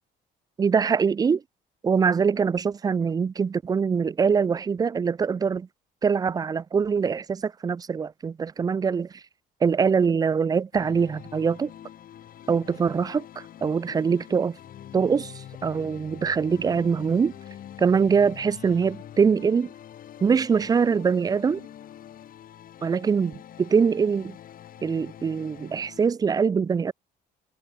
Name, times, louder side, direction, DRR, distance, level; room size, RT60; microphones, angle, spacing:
voice 1, 0.6-1.4 1.8-5.7 6.0-9.2 9.6-11.7 12.5-14.6 14.9-17.3 17.8-19.7 20.2-21.7 22.8-24.4 24.8-26.9, right 6 dB, 20° right, 0.4 m, -23 dB
sound 1, 10.7-26.1, left 11 dB, 55° left, 2.9 m, -45 dB
cardioid pair, 110°, 17 cm